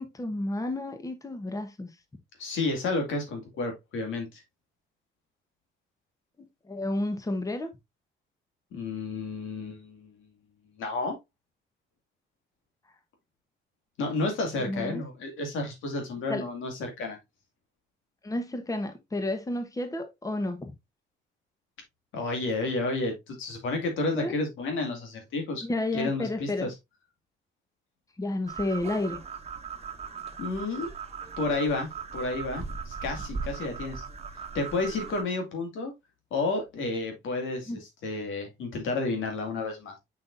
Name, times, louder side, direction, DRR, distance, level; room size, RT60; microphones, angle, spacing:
voice 1, 0.0-1.9 6.7-7.7 14.6-15.0 16.3-16.4 18.2-20.7 24.1-24.3 25.6-26.7 28.2-29.2 37.7-37.8, left 2 dB, 15° left, 1.2 m, -31 dB
voice 2, 2.4-4.4 8.7-10.1 10.8-11.2 14.0-17.2 22.1-25.6 25.9-26.7 30.4-30.9 31.4-34.0 34.5-35.9 36.3-40.0, left 3 dB, 80° left, 2.5 m, -31 dB
sound 1, 28.5-35.2, right 5 dB, 30° right, 1.2 m, -38 dB
6.2 x 6.0 x 2.6 m
cardioid pair, 90°, 20 cm